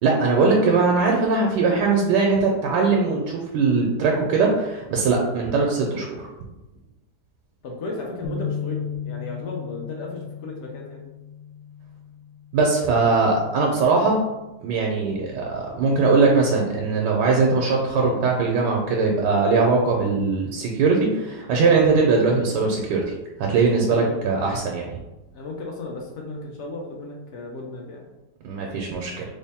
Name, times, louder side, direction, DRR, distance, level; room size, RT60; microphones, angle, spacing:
voice 1, 0.0-6.2 12.5-14.2 14.6-23.0 23.5-25.0 28.4-29.3, right 4 dB, 90° right, -1 dB, 1.2 m, -20 dB
voice 2, 7.6-11.1 23.9-24.2 25.3-28.1, left 2 dB, 75° left, 0 dB, 0.6 m, -34 dB
sound 1, 8.2-14.5, left 7 dB, 90° left, 1.2 m, -36 dB
3.3 x 2.1 x 4.0 m, 1.0 s
omnidirectional pair, 1.8 m